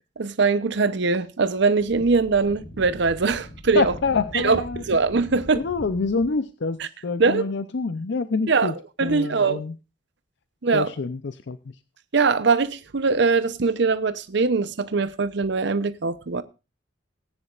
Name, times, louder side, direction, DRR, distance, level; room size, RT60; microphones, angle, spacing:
voice 1, 0.2-3.9 4.3-5.7 6.8-6.9 7.2-7.5 8.5-9.6 10.6-10.9 12.1-16.4, right 4 dB, 65° right, 0.7 m, -22 dB
Wind, 1.6-6.4, equal, 40° left, 2.1 m, -41 dB
voice 2, 3.7-4.8 5.5-8.7 9.0-9.7 10.7-11.6, left 4 dB, 65° left, 0.6 m, -26 dB
19.0 x 9.9 x 2.4 m
head